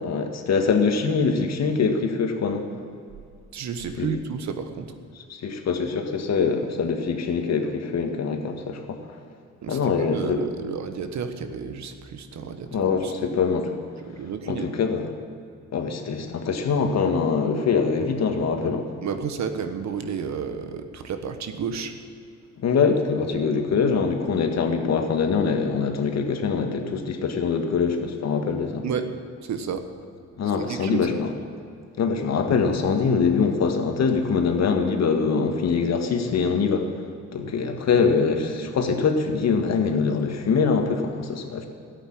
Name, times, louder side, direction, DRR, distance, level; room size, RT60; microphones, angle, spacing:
voice 1, 0.0-2.6 4.0-4.1 5.3-9.0 9.7-10.4 12.7-13.7 14.5-15.1 15.7-18.9 22.6-28.8 30.4-31.3 32.0-36.9 37.3-41.7, left 5 dB, 60° left, 5 dB, 1.8 m, -23 dB
voice 2, 3.5-4.9 9.6-13.1 14.0-14.7 19.0-21.9 28.8-29.1 29.4-29.8 30.7-31.1, right 6 dB, 65° right, 8 dB, 1.4 m, -31 dB
14.0 x 8.5 x 10.0 m, 2.4 s
cardioid pair, 90°, 30 cm